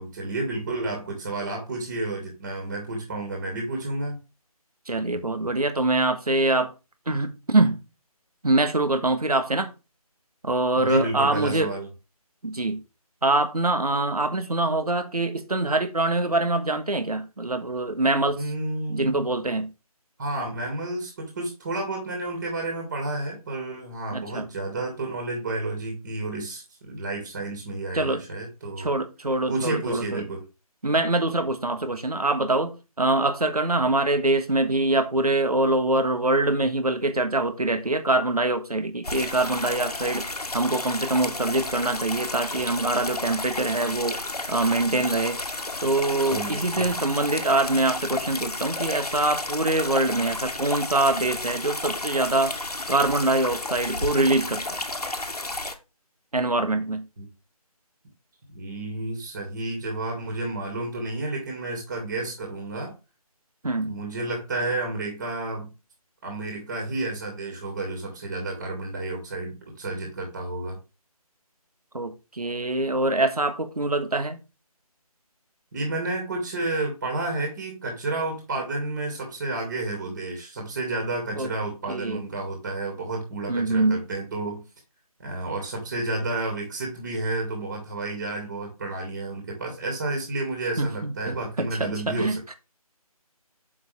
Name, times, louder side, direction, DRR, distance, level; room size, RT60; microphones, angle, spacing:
voice 1, 0.0-4.2 10.8-11.9 18.4-19.2 20.2-28.9 29.5-30.4 46.3-46.9 57.2-57.3 58.5-62.9 63.8-65.7 66.2-70.8 75.7-84.6 85.2-92.6, right 2 dB, 30° right, 2.4 m, -31 dB
voice 2, 4.9-6.7 7.1-7.8 8.4-9.7 10.4-11.7 12.4-12.8 13.2-18.5 18.9-19.7 24.1-24.5 27.9-28.2 28.8-30.3 30.8-40.3 40.5-44.2 44.5-45.4 45.8-52.5 52.9-54.8 56.3-57.0 63.6-63.9 71.9-74.4 81.3-81.5 81.9-82.2 83.5-84.0 90.8-92.5, right 2 dB, 75° right, 1.4 m, -24 dB
sound 1, 39.0-55.8, left 2 dB, 80° left, 1.4 m, -32 dB
7.1 x 6.2 x 3.5 m
figure-of-eight pair, 155°, 20 cm